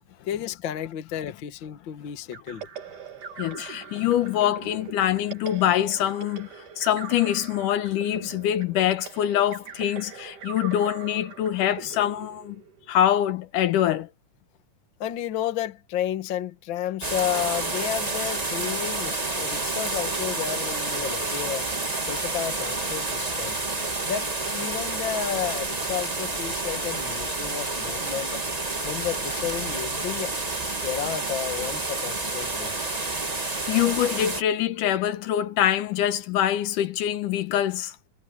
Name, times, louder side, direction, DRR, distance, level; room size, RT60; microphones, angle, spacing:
voice 1, 0.3-2.6 15.0-21.7 22.1-23.6 24.0-28.4 28.8-30.3 30.7-33.1, left 10 dB, 50° left, 1.7 m, -32 dB
sound 1, 2.3-12.9, right 7 dB, 75° right, 4.4 m, -41 dB
voice 2, 3.4-6.5 6.8-12.6 12.9-14.1 33.4-38.0, left 11 dB, 80° left, 2.5 m, -24 dB
sound 2, 17.0-34.4, right 3 dB, 35° right, 0.6 m, -29 dB
omnidirectional pair, 3.7 m